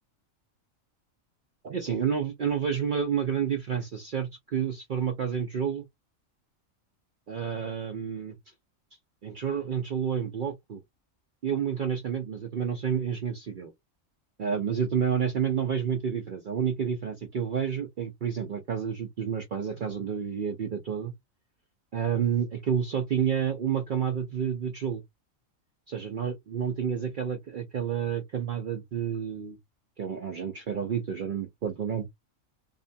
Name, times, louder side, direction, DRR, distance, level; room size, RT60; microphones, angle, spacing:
voice 1, 1.6-5.9 7.3-8.4 9.2-10.8 11.4-13.7 14.4-21.1 21.9-25.0 25.9-29.6 30.0-32.1, right 7 dB, 80° right, 0.4 m, -29 dB
2.6 x 2.1 x 2.5 m
omnidirectional pair, 1.4 m